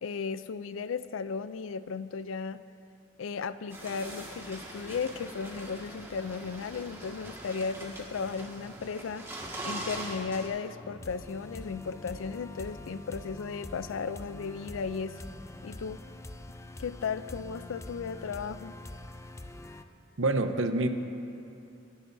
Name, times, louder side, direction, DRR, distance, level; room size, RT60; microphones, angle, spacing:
voice 1, 0.0-2.6 3.2-9.3 9.6-15.2 15.6-16.0 16.8-18.8, left 5 dB, 90° left, 14 dB, 0.4 m, -35 dB
sound 1, 3.7-10.5, right 1 dB, 15° right, 1.8 m, -42 dB
sound 2, 9.4-19.8, left 2 dB, 15° left, 0.4 m, -45 dB
voice 2, 20.2-20.9, right 2 dB, 85° right, 7 dB, 0.8 m, -26 dB
26.0 x 11.0 x 2.7 m, 2.8 s
head